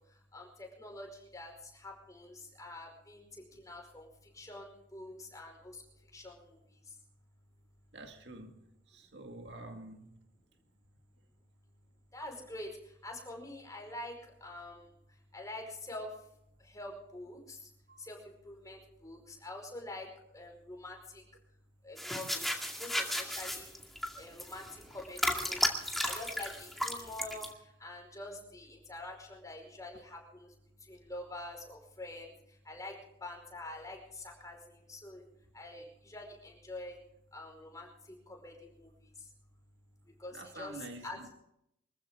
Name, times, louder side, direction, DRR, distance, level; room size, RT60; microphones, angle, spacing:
voice 1, 0.3-4.1 4.3-5.8 6.1-6.3 12.1-12.7 13.0-14.1 14.4-14.9 15.3-16.1 16.7-17.6 18.0-18.2 18.4-20.1 20.3-21.2 21.8-23.7 24.1-27.5 27.8-30.5 30.9-32.3 32.6-32.9 33.2-35.2 35.5-37.0 37.3-37.9 38.3-38.9 40.2-41.2, left 1 dB, 20° left, 5.0 m, -46 dB
voice 2, 7.9-10.1 17.9-18.0 40.3-41.3, right 2 dB, 65° right, 2.1 m, -48 dB
sound 1, 22.0-27.5, equal, ahead, 2.1 m, -34 dB
25.0 x 15.0 x 3.8 m
head